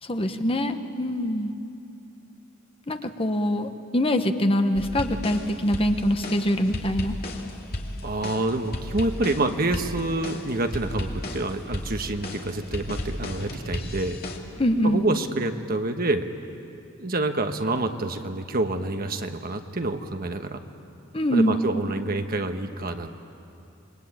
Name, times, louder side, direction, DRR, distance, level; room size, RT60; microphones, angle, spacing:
voice 1, 0.0-1.5 2.9-7.1 14.6-15.1 21.1-21.6, equal, 30° left, 7 dB, 1.2 m, -24 dB
sound 1, 4.7-14.4, left 1 dB, 50° left, 2.4 m, -34 dB
voice 2, 8.0-14.2 14.8-16.3 17.0-20.6 21.3-23.1, right 2 dB, 50° right, 6 dB, 1.3 m, -27 dB
27.5 x 23.0 x 8.9 m, 2.7 s
head